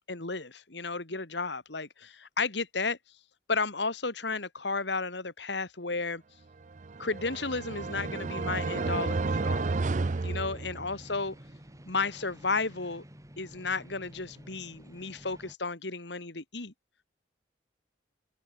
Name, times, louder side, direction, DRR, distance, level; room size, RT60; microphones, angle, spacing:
voice 1, 0.1-3.0 3.5-6.2 7.0-9.7 10.2-11.3 11.8-13.0 13.4-16.7, left 4 dB, 70° left, 2.2 m, -33 dB
sound 1, 6.7-11.1, right 3 dB, 40° right, 0.5 m, -31 dB
sound 2, 10.0-15.5, equal, 15° right, 3.8 m, -51 dB
open air
head